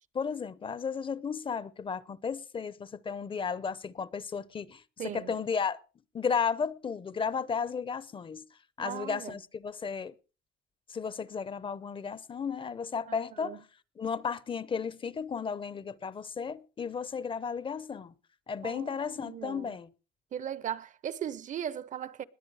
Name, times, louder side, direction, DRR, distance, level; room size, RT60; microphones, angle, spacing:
voice 1, 0.1-4.8 5.1-5.8 6.1-8.4 8.8-10.1 10.9-13.6 14.0-18.1 18.5-19.9, left 6 dB, 30° left, 0.7 m, -34 dB
voice 2, 5.0-5.3 8.8-9.4 13.1-13.6 18.6-19.8 20.3-22.2, right 9 dB, 50° right, 0.7 m, -38 dB
20.5 x 8.7 x 4.8 m
cardioid pair, 110°, 17 cm